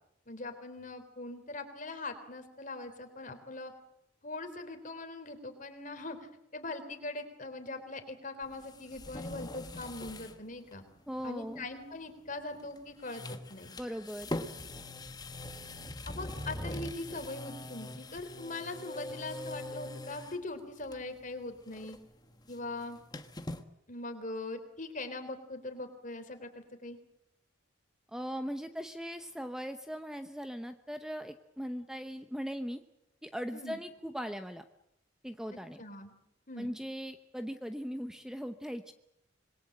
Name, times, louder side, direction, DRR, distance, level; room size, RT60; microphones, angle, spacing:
voice 1, 0.3-3.7 4.2-10.8 11.2-13.7 16.1-22.0 22.5-23.0 23.9-27.0 33.5-33.8 35.8-36.1 36.5-36.7, left 2 dB, 40° left, 8 dB, 3.7 m, -41 dB
sound 1, 8.4-10.4 10.7-10.8 12.5-12.8 13.0-20.4 20.8-21.3 21.5-23.6, left 1 dB, 20° left, 1.4 m, -42 dB
voice 2, 11.1-11.7 13.8-14.3 28.1-32.8 33.2-34.6 35.2-35.8 36.6-38.9, equal, 5° right, 8 dB, 0.9 m, -39 dB
26.5 x 21.5 x 7.8 m, 0.80 s
head